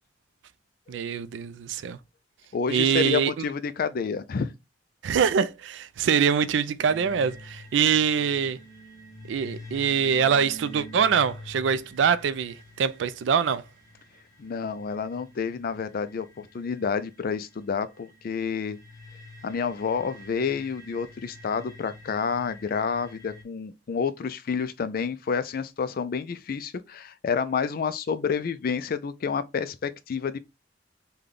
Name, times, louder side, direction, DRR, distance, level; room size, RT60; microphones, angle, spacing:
voice 1, 0.9-2.0 2.7-3.4 5.0-8.6 9.3-13.6, right 7 dB, 85° right, 0.3 m, -24 dB
voice 2, 2.5-4.5 14.4-18.8 19.4-30.4, left 6 dB, 55° left, 0.4 m, -29 dB
sound 1, 6.9-23.4, left 1 dB, 15° left, 1.2 m, -47 dB
3.4 x 2.2 x 3.7 m
head